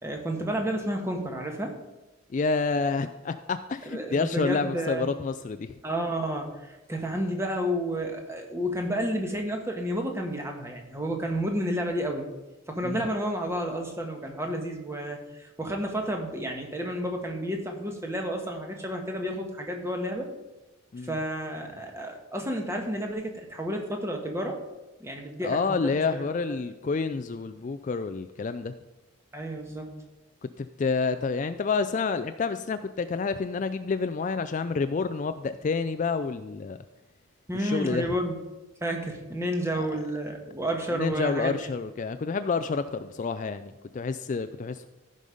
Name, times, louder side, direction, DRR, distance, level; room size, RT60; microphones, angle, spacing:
voice 1, 0.0-1.8 3.9-5.1 5.8-12.3 12.7-20.3 21.0-24.6 25.0-26.2 29.3-29.9 37.5-38.4 38.8-41.6, equal, 15° right, 2 dB, 1.3 m, -31 dB
voice 2, 2.3-5.7 12.8-13.0 20.9-21.2 25.4-28.7 30.4-36.8 37.5-38.1 39.7-39.9 40.9-44.9, left 4 dB, 35° left, 10 dB, 0.3 m, -29 dB
15.0 x 5.4 x 5.0 m, 1.1 s
head